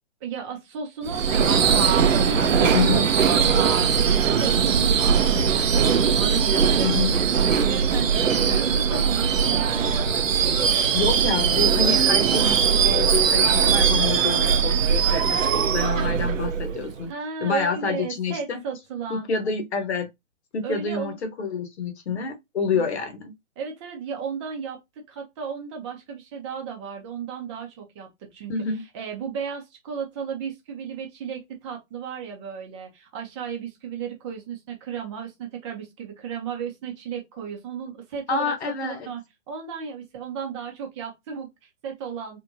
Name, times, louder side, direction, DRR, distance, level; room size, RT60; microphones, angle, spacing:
voice 1, 0.2-11.0 17.1-19.3 20.6-21.2 22.7-22.9 23.6-24.8 25.1-28.5 28.9-38.5 38.8-39.2 39.5-42.4, right 6 dB, 20° right, 0.8 m, -34 dB
Subway metro underground / Screech, 1.1-17.0, right 7 dB, 75° right, 0.7 m, -20 dB
voice 2, 2.7-3.1 6.8-7.2 10.9-17.1 17.4-18.6 19.1-20.1 20.5-23.3 28.5-28.8 38.3-39.1, left 4 dB, 55° left, 1.1 m, -28 dB
3.3 x 3.0 x 2.6 m
hypercardioid pair, 135°, 40 cm